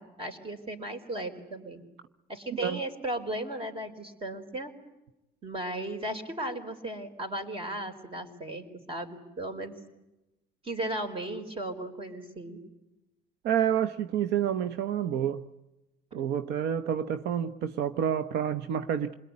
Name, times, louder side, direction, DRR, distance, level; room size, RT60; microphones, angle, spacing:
voice 1, 0.0-1.8 2.3-4.7 5.4-9.7 10.6-12.6, right 1 dB, 35° right, 4.4 m, -36 dB
voice 2, 13.4-15.4 16.1-19.1, right 9 dB, 80° right, 0.9 m, -29 dB
28.0 x 21.5 x 9.7 m
cardioid pair, 110°, 17 cm